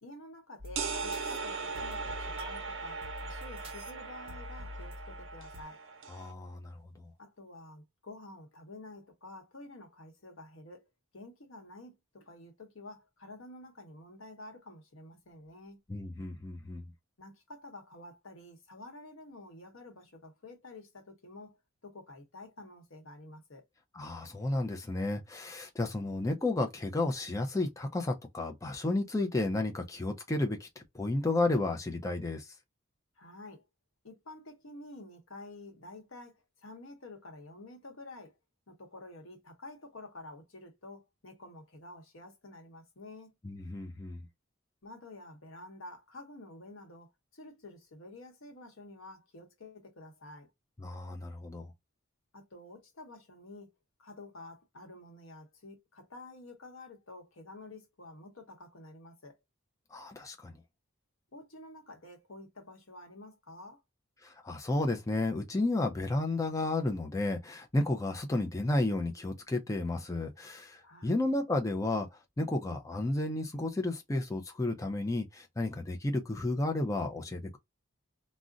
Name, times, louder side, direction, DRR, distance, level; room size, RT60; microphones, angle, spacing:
voice 1, 0.0-5.8 7.2-10.8 11.1-15.8 17.2-21.6 21.8-23.6 33.2-33.6 34.0-38.4 38.7-43.3 44.8-50.5 52.3-53.7 54.0-59.4 61.3-63.8 70.8-71.3, left 2 dB, 65° left, 1.0 m, -50 dB
sound 1, 0.6-5.6, left 2 dB, 25° right, 0.8 m, -46 dB
sound 2, 0.8-6.3, right 4 dB, 60° right, 0.7 m, -39 dB
voice 2, 6.1-7.1 15.9-16.8 23.9-32.5 43.4-44.3 50.8-51.7 59.9-60.6 64.2-72.1 72.4-77.6, left 2 dB, 15° left, 0.4 m, -32 dB
2.4 x 2.1 x 3.7 m
head